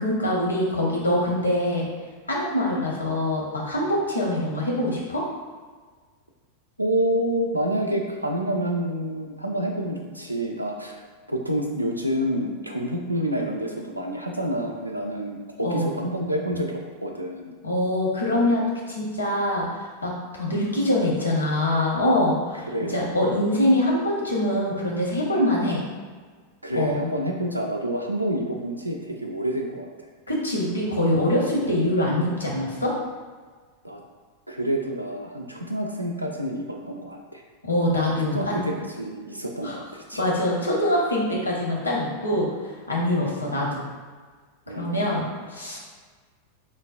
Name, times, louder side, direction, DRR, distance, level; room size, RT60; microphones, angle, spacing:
voice 1, 0.0-1.8 2.3-5.2 15.6-15.9 17.6-19.7 20.0-22.6 22.9-25.8 26.7-27.0 30.3-32.9 37.6-38.6 39.6-39.8 40.1-42.5 42.9-43.9 44.8-45.8, left 1 dB, 80° left, -3 dB, 0.6 m, -24 dB
voice 2, 6.8-11.0 11.3-17.5 22.7-23.2 26.6-29.9 31.6-32.0 33.8-34.0 34.5-37.4 38.3-40.2 43.2-43.5 44.7-45.0, right 1 dB, 85° right, 1 dB, 0.3 m, -28 dB
3.9 x 2.0 x 2.4 m, 1.5 s
figure-of-eight pair, 90°, 0 cm